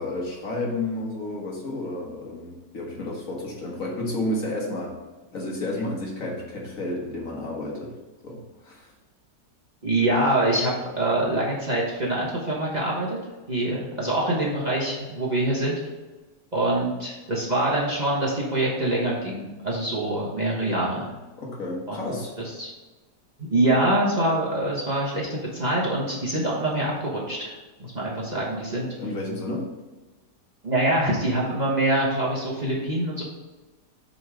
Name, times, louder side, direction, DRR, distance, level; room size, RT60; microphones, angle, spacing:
voice 1, 0.0-4.9 5.3-7.9 8.2-8.9 21.4-22.3 29.0-29.7, left 1 dB, 50° left, -2 dB, 1.6 m, -31 dB
voice 2, 9.8-13.2 13.5-15.7 16.5-21.1 21.9-22.1 22.6-22.7 23.5-28.9 30.6-33.2, right 1 dB, 25° right, -5 dB, 1.2 m, -25 dB
7.7 x 3.8 x 4.8 m, 1.2 s
omnidirectional pair, 1.9 m